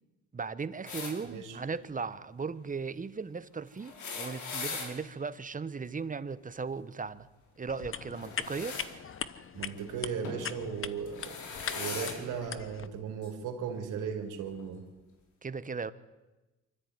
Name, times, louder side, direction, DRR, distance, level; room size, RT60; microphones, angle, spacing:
voice 1, 0.3-7.3 7.6-8.8 15.4-15.9, right 5 dB, 25° right, 14 dB, 1.1 m, -37 dB
sound 1, 0.9-1.1 3.8-4.9 8.1-8.9 10.2-10.4 11.1-12.2 13.2-13.3 14.5-14.6, left 4 dB, 70° left, 4.8 m, -39 dB
voice 2, 1.2-1.6 9.5-11.4 11.7-14.8, right 6 dB, 90° right, 4 dB, 3.3 m, -37 dB
sound 2, 7.7-12.9, left 7 dB, 45° left, 1.1 m, -41 dB
24.5 x 13.5 x 9.5 m, 1.1 s
cardioid pair, 90°, 30 cm